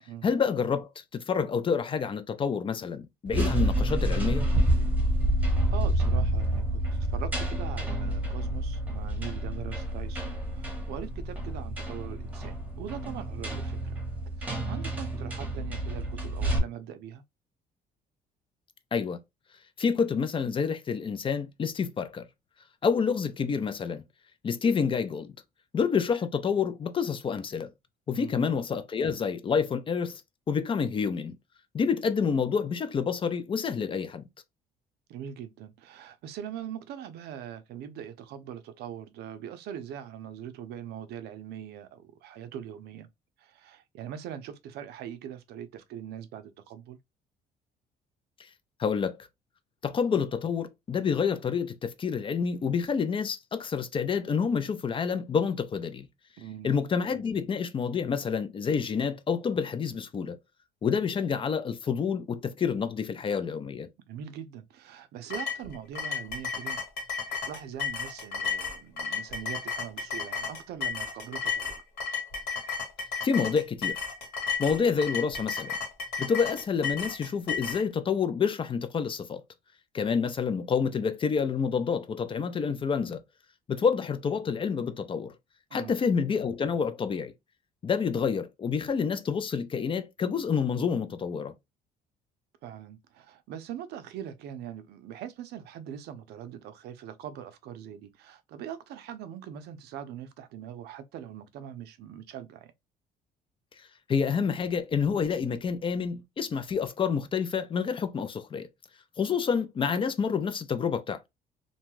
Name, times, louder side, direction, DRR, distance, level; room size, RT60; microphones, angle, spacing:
voice 1, 0.2-4.5 18.9-19.2 19.8-22.3 22.8-24.0 24.4-25.4 25.7-27.7 28.1-30.2 30.5-31.4 31.7-34.2 48.8-49.2 49.8-56.1 56.6-60.4 60.8-63.9 73.2-74.0 74.6-75.7 76.2-79.4 79.9-83.2 83.7-85.3 85.7-87.3 87.8-91.5 104.1-108.7 109.2-111.2, left 6 dB, 30° left, 0.4 m, -28 dB
sound 1, 3.3-16.6, right 1 dB, 10° right, 0.9 m, -28 dB
voice 2, 5.7-6.8 7.1-14.0 14.4-17.2 28.1-28.4 35.1-43.1 43.4-47.0 56.4-56.7 64.1-66.8 67.4-71.8 85.7-86.0 92.6-102.7, right 9 dB, 75° right, 0.5 m, -42 dB
sound 2, 65.3-77.8, left 5 dB, 70° left, 1.4 m, -33 dB
2.6 x 2.2 x 3.0 m
cardioid pair, 110°, 17 cm